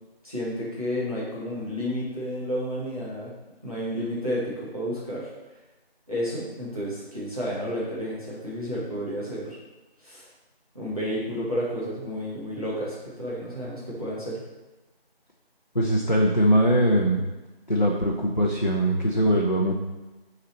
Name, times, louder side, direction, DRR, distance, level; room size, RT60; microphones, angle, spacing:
voice 1, 0.2-3.3 3.6-5.3 6.1-9.6 10.0-10.2 10.7-14.4, equal, 35° right, -8 dB, 1.5 m, -31 dB
voice 2, 15.7-17.3 17.7-19.7, equal, 45° left, -2 dB, 0.7 m, -21 dB
7.0 x 4.0 x 4.2 m, 1.1 s
figure-of-eight pair, 180°, 31 cm